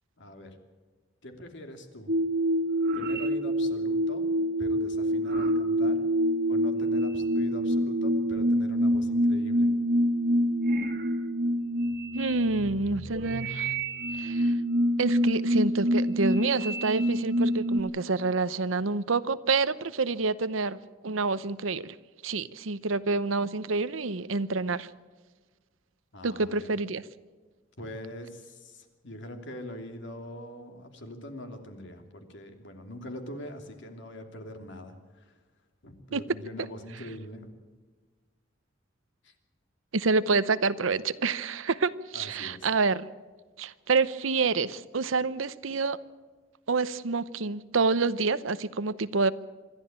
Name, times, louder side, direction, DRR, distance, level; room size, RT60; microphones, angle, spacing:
voice 1, 0.2-0.6 1.2-2.1 2.9-4.3 4.6-6.0 6.5-9.7 26.1-26.7 27.8-35.4 35.8-37.5 39.2-39.3 42.1-42.7, left 1 dB, 65° left, 5 dB, 2.8 m, -43 dB
sound 1, 2.1-17.8, equal, 55° right, 1.8 m, -26 dB
voice 2, 12.1-13.7 14.2-14.5 15.0-20.8 21.0-21.9 22.2-24.9 26.2-27.0 36.1-36.2 39.9-43.0 43.6-46.0 46.7-49.3, right 4 dB, 80° right, 15 dB, 0.8 m, -27 dB
26.5 x 12.5 x 8.8 m, 1.3 s
head